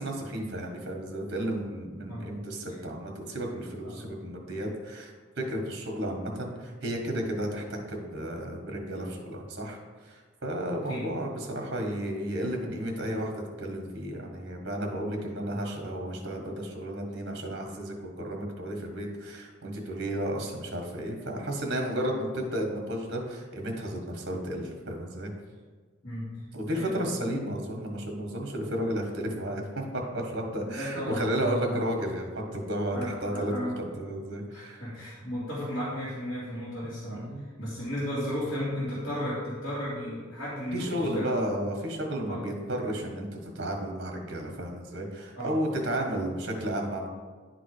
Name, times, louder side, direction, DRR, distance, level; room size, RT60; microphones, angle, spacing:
voice 1, 0.0-25.3 26.5-34.8 37.1-37.4 40.7-47.1, right 1 dB, 55° right, 1 dB, 1.5 m, -33 dB
voice 2, 26.0-27.5 30.6-31.8 32.9-33.9 34.5-41.5 42.3-42.5 45.4-45.6, equal, 60° left, -11 dB, 2.5 m, -35 dB
10.5 x 3.7 x 5.0 m, 1.5 s
head